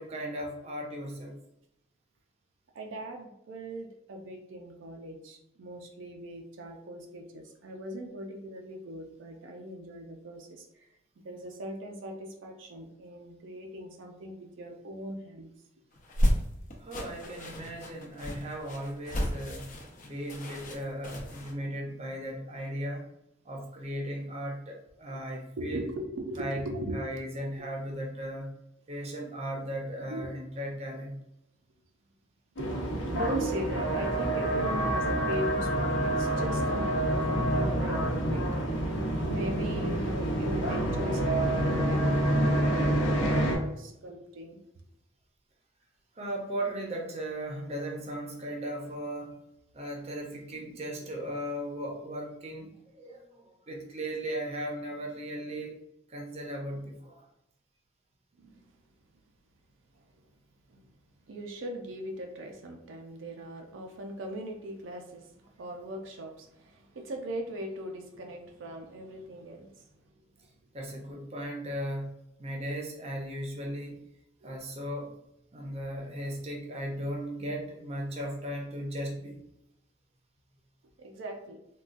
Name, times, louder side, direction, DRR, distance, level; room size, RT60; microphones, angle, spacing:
voice 1, 0.0-1.4 16.8-19.7 20.0-23.1 23.4-25.9 26.4-26.6 26.9-28.5 28.9-31.2 46.2-49.4 49.7-55.7 56.1-57.2 70.7-72.1 72.4-74.0 74.4-75.1 75.5-79.4, right 1 dB, 35° right, 0 dB, 0.6 m, -37 dB
voice 2, 2.7-10.9 11.2-15.5 17.2-17.5 21.6-21.7 25.1-25.2 25.6-27.0 30.1-30.3 32.6-38.4 38.8-39.0 39.3-44.6 58.4-58.7 59.9-60.3 60.7-60.9 61.3-69.9 74.4-74.5 81.0-81.6, equal, 85° right, 2 dB, 0.5 m, -39 dB
sound 1, 15.9-21.5, equal, 40° left, 0.5 m, -32 dB
sound 2, 32.6-43.6, right 1 dB, 90° left, 0.8 m, -27 dB
3.7 x 2.3 x 2.4 m, 0.82 s
head